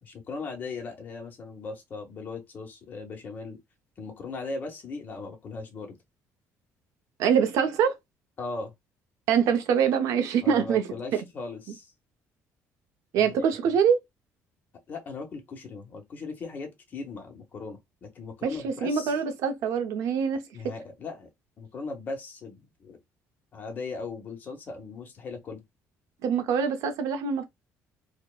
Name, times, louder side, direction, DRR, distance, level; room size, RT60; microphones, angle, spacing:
voice 1, 0.0-3.6 4.0-6.0 8.4-8.7 10.4-11.9 13.1-13.8 14.9-19.1 20.5-21.3 21.6-23.0 23.5-25.6, left 3 dB, 30° left, 0.8 m, -38 dB
voice 2, 7.2-7.9 9.3-11.2 13.1-14.0 18.4-20.4 26.2-27.4, right 7 dB, 70° right, 0.5 m, -24 dB
2.8 x 2.1 x 2.2 m
cardioid pair, 160°, 6 cm